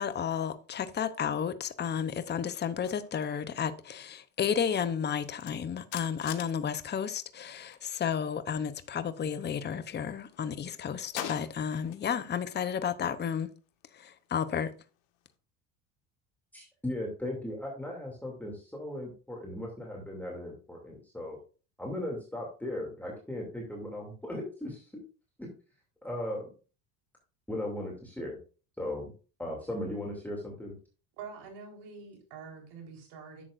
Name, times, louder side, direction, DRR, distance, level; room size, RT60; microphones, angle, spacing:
voice 1, 0.0-13.5 14.3-14.7, left 7 dB, 25° left, 0.8 m, -32 dB
sound 1, 2.5-7.9 8.1-9.8 10.1-12.3 12.6-15.3, left 11 dB, 85° left, 1.5 m, -47 dB
voice 2, 16.5-21.4 21.8-25.0 26.0-26.5 27.5-28.4 28.8-29.1 29.4-30.7, left 1 dB, 5° left, 2.7 m, -37 dB
voice 3, 31.2-33.4, right 5 dB, 70° right, 4.1 m, -46 dB
11.0 x 7.6 x 2.6 m
supercardioid pair, 105°, 42 cm